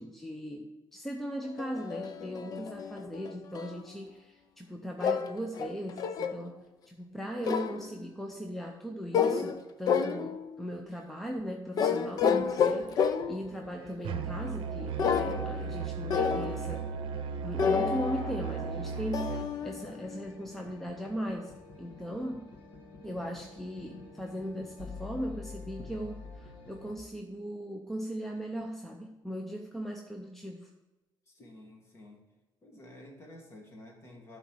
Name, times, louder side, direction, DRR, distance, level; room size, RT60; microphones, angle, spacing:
voice 1, 0.0-6.6 6.9-16.9 17.4-22.5 23.0-30.7, equal, 5° left, 2 dB, 0.5 m, -38 dB
sound 1, 1.6-3.8 5.0-6.4 7.4-7.9 9.1-9.6 9.9-10.6 11.8-13.5 15.0-15.8 16.1-16.7 17.6-20.2, left 6 dB, 50° left, 0.5 m, -30 dB
sound 2, 12.0-27.0, left 4 dB, 80° left, 1.7 m, -49 dB
Musical instrument, 14.0-19.5, right 6 dB, 80° right, 0.6 m, -36 dB
voice 2, 31.3-32.2 32.6-34.4, left 1 dB, 30° left, 1 dB, 1.8 m, -51 dB
11.0 x 4.0 x 6.1 m, 1.1 s
cardioid pair, 170°, 9 cm